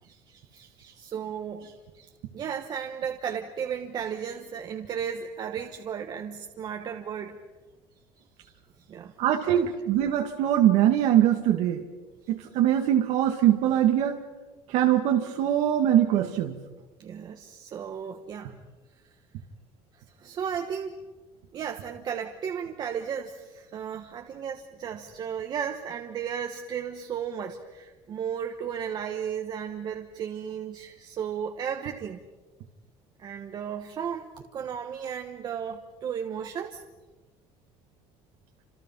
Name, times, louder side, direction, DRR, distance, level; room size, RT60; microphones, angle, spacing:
voice 1, 0.0-7.4 8.4-8.5 8.9-9.1 9.4-9.7 17.0-18.5 20.2-21.0 21.5-32.2 33.2-36.8, right 8 dB, 35° right, 4 dB, 1.3 m, -35 dB
voice 2, 9.2-11.8 12.3-14.2 14.7-16.6, right 11 dB, 65° right, 3 dB, 2.0 m, -22 dB
29.5 x 27.0 x 5.7 m, 1.2 s
cardioid pair, 165°, 12 cm